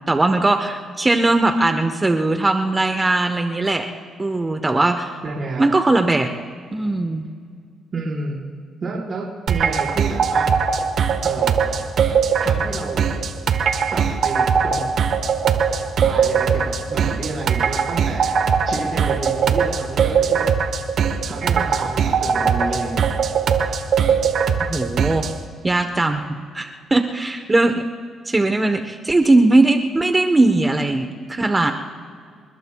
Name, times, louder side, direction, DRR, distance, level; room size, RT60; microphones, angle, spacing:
voice 1, 0.1-3.9 4.2-5.1 5.6-6.3 6.7-7.3 16.1-16.2 24.7-25.3 25.6-27.8 28.3-31.7, right 2 dB, 20° right, 6 dB, 1.1 m, -19 dB
voice 2, 5.2-5.7 7.9-8.4 8.8-10.5 11.2-11.7 12.4-13.1 13.9-14.9 16.0-18.4 18.6-20.5 21.3-23.0, right 3 dB, 45° right, -4 dB, 4.9 m, -30 dB
sound 1, 9.5-25.4, right 6 dB, 65° right, 1.3 m, -20 dB
29.0 x 20.5 x 2.3 m, 2.1 s
cardioid pair, 90°, 0 cm